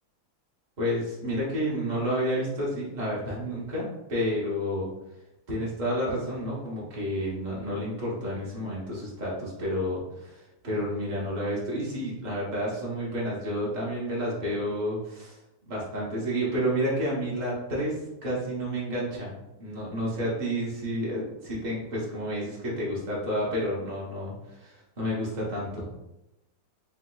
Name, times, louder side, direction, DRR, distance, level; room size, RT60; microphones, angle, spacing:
voice 1, 0.8-4.9 5.5-19.3 19.6-25.9, equal, 80° right, -5 dB, 0.4 m, -30 dB
3.4 x 2.9 x 2.2 m, 0.94 s
omnidirectional pair, 2.0 m